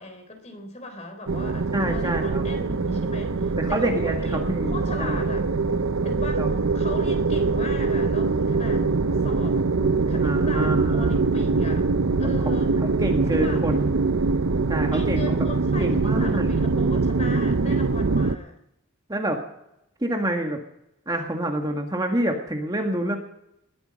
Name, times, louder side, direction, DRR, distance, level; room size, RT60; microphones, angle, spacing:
voice 1, 0.0-5.4 6.0-6.5 6.7-8.9 9.2-9.6 10.1-11.9 12.2-12.8 13.4-13.7 14.9-18.6, left 2 dB, 30° left, 6 dB, 3.7 m, -38 dB
sound 1, 1.3-18.4, right 3 dB, 75° right, 0.7 m, -23 dB
voice 2, 1.7-2.4 3.6-5.3 6.4-6.5 10.2-11.2 12.8-14.1 14.7-15.4 15.8-16.5 19.1-19.4 20.0-20.6 21.1-23.2, right 1 dB, 20° right, 2 dB, 1.7 m, -27 dB
20.0 x 13.0 x 5.3 m, 0.82 s
head